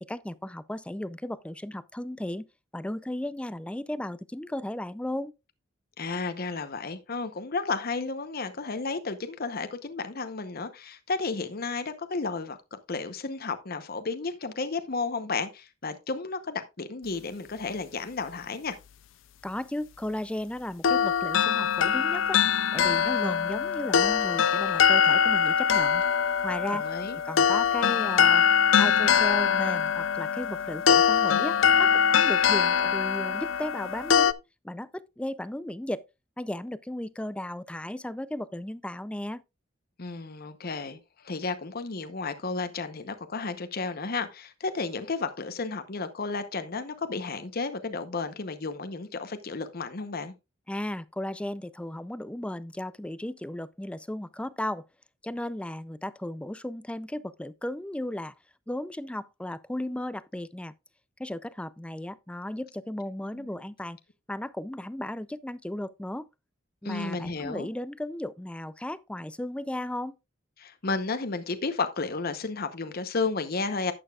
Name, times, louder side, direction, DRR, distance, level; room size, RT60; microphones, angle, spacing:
voice 1, 0.0-2.5 2.7-5.3 19.4-22.4 22.7-26.0 26.4-26.8 27.3-28.4 28.7-34.4 34.6-36.0 36.4-39.4 50.7-54.8 55.2-58.3 58.7-60.7 61.2-64.0 64.3-66.3 66.8-70.2, left 1 dB, 5° left, 0.4 m, -35 dB
voice 2, 6.0-18.8 26.7-27.2 40.0-50.3 63.3-63.5 66.8-67.7 70.6-73.9, left 4 dB, 50° left, 0.8 m, -32 dB
sound 1, 20.8-34.3, left 7 dB, 75° left, 0.5 m, -23 dB
11.5 x 8.8 x 2.3 m
head